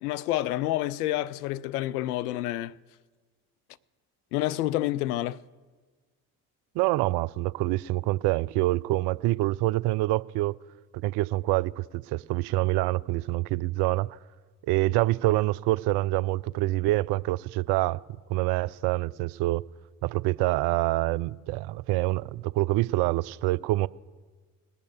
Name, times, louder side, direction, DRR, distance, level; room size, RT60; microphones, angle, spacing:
voice 1, 0.0-2.7 4.3-5.4, left 15 dB, 80° left, 0.5 m, -28 dB
voice 2, 6.8-10.5 11.0-14.2 14.7-18.0 18.3-19.6 20.0-23.9, right 18 dB, 60° right, 0.5 m, -26 dB
19.5 x 6.9 x 7.1 m
hypercardioid pair, 55°, 45 cm